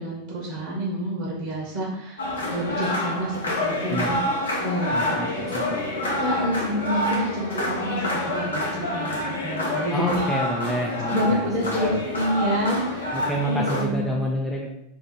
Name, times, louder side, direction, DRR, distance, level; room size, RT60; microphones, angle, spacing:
voice 1, 0.0-4.2 4.6-10.2 11.1-13.2 13.5-14.1, equal, 50° right, -3 dB, 0.9 m, -28 dB
sound 1, 2.2-13.8, left 1 dB, 75° left, 0.7 m, -27 dB
voice 2, 4.9-5.3 9.9-11.9 13.1-14.8, equal, 5° left, -3 dB, 0.5 m, -28 dB
2.7 x 2.5 x 4.1 m, 0.77 s
figure-of-eight pair, 85°, 0 cm